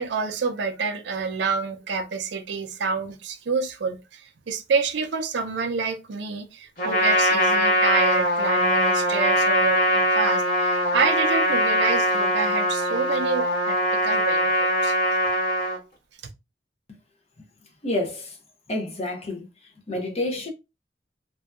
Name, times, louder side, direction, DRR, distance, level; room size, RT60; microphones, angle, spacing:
voice 1, 0.0-15.0, right 5 dB, 70° right, 0.4 m, -28 dB
Trumpet, 6.8-15.8, equal, 55° left, 1.2 m, -22 dB
voice 2, 17.8-18.4 18.7-19.5 19.9-20.5, left 1 dB, 35° left, 0.6 m, -28 dB
2.6 x 2.2 x 2.2 m
head